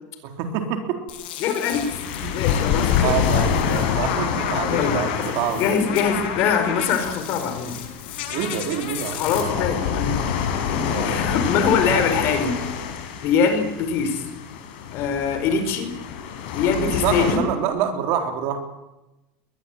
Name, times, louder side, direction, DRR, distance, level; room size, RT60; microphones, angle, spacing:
voice 1, 0.2-1.0 2.2-2.3 3.0-5.6 8.3-9.2 10.9-12.1 16.8-18.6, right 8 dB, 50° right, 5 dB, 3.8 m, -27 dB
sound 1, 1.1-9.4, left 8 dB, 90° left, 6.8 m, -33 dB
voice 2, 1.4-2.0 2.3-3.9 4.7-7.8 9.1-12.5 13.2-14.3 14.9-15.9 16.5-17.5, left 6 dB, 45° left, 8 dB, 4.6 m, -23 dB
sound 2, 1.7-17.4, left 8 dB, 70° left, 6.2 m, -27 dB
21.5 x 21.0 x 9.0 m, 1.0 s
cardioid pair, 170°, 5 cm